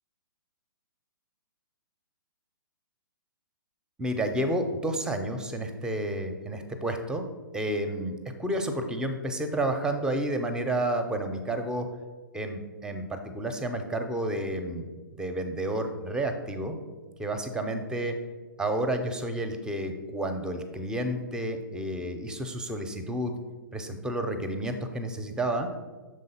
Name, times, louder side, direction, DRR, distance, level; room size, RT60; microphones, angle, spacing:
voice 1, 4.0-7.3 7.5-11.9 12.3-14.9 15.2-16.8 17.2-18.2 18.6-23.4 23.7-25.7, right 1 dB, 5° right, 7 dB, 0.5 m, -30 dB
6.3 x 3.8 x 5.6 m, 1.3 s
figure-of-eight pair, 125°, 12 cm